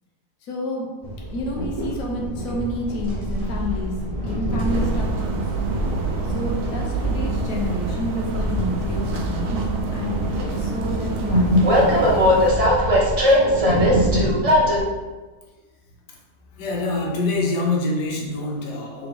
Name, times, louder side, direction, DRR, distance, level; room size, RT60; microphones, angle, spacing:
voice 1, 0.4-0.9 1.3-4.0 4.2-5.5 6.2-9.6 9.9-11.5 13.3-13.9, left 1 dB, 65° left, -2 dB, 1.2 m, -30 dB
Train, 1.0-14.8, equal, 45° right, 0.4 m, -22 dB
sound 1, 4.6-12.5, right 3 dB, 65° right, 0.9 m, -27 dB
voice 2, 16.5-19.1, left 2 dB, 90° left, -2 dB, 1.4 m, -25 dB
3.7 x 3.4 x 3.4 m, 1.3 s
omnidirectional pair, 1.7 m